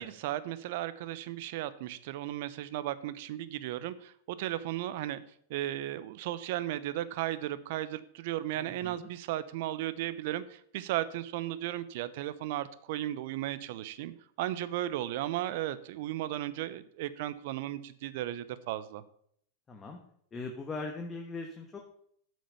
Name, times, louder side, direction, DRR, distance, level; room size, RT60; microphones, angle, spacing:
voice 1, 0.0-5.2 5.5-14.1 14.4-19.0, right 13 dB, 65° right, 15 dB, 0.8 m, -35 dB
voice 2, 8.5-9.1 19.7-20.0 20.3-21.8, left 3 dB, 20° left, 3 dB, 1.3 m, -40 dB
8.9 x 6.2 x 6.9 m, 0.65 s
hypercardioid pair, 120°, 0 cm